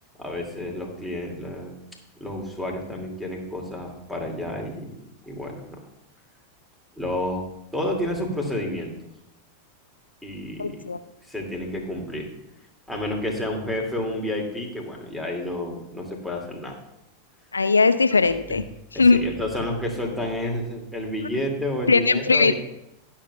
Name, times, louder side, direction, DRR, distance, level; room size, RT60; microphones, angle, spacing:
voice 1, 0.2-1.8 2.2-5.8 7.0-7.5 7.7-8.9 10.2-10.8 11.3-12.3 12.9-16.8 18.3-18.6 18.9-22.5, left 1 dB, ahead, 1 dB, 2.3 m, -30 dB
voice 2, 10.6-11.0 17.5-18.6 19.0-19.2 21.9-22.5, left 4 dB, 75° left, 12 dB, 0.4 m, -19 dB
21.0 x 7.3 x 2.3 m, 0.83 s
figure-of-eight pair, 90°, 0 cm